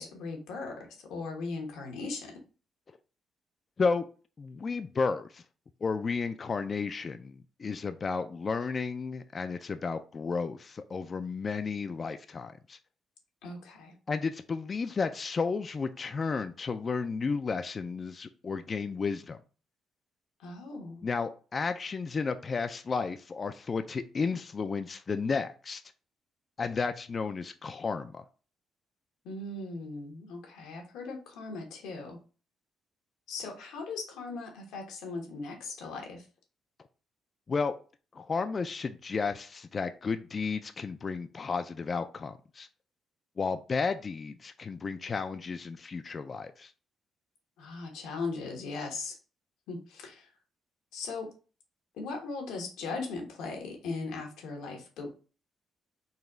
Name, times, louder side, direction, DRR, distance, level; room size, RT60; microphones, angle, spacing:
voice 1, 0.0-2.4 13.4-13.9 20.4-21.0 29.2-32.2 33.3-36.3 47.6-49.2 49.7-50.3 50.9-51.3 51.9-55.1, left 3 dB, 90° left, 2 dB, 1.1 m, -38 dB
voice 2, 4.4-5.4 5.8-12.8 14.1-19.4 21.0-25.8 26.6-28.2 37.5-37.7 38.1-42.7 43.4-46.7, left 4 dB, 40° left, 9 dB, 0.3 m, -32 dB
4.0 x 2.3 x 3.8 m, 0.36 s
cardioid pair, 90°, 0 cm